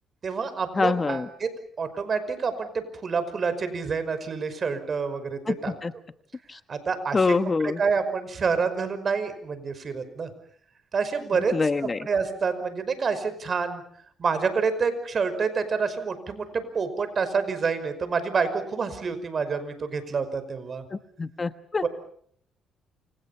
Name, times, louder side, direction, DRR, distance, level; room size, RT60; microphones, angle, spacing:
voice 1, 0.2-1.5 1.8-5.7 6.7-7.4 7.6-10.3 10.9-11.6 11.8-13.8 14.2-20.8 21.8-21.9, right 5 dB, 45° right, 11 dB, 5.5 m, -28 dB
voice 2, 0.7-1.3 5.5-5.9 6.5-6.6 7.1-7.8 11.5-12.1 20.9-21.8, left 4 dB, 30° left, 11 dB, 1.2 m, -25 dB
29.0 x 27.0 x 5.7 m, 0.62 s
cardioid pair, 90°, 0 cm